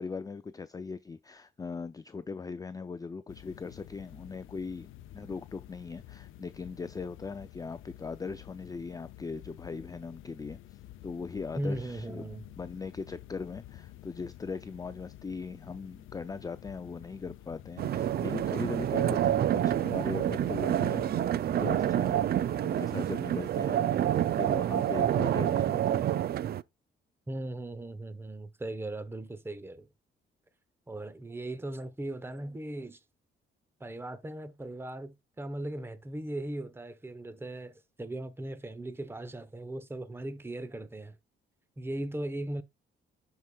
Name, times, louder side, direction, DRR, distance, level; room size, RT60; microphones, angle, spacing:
voice 1, 0.0-4.9 5.1-12.3 12.6-21.2 21.6-22.2 22.6-26.1, left 4 dB, 20° left, 0.4 m, -39 dB
sound 1, 3.3-22.6, left 14 dB, 85° left, 0.6 m, -50 dB
voice 2, 11.6-12.4 27.3-29.9 30.9-33.0 33.8-41.2 41.8-42.6, right 1 dB, 10° right, 0.9 m, -38 dB
sound 2, 17.8-26.6, right 11 dB, 50° right, 0.4 m, -28 dB
12.0 x 4.9 x 2.3 m
cardioid pair, 90°, 20 cm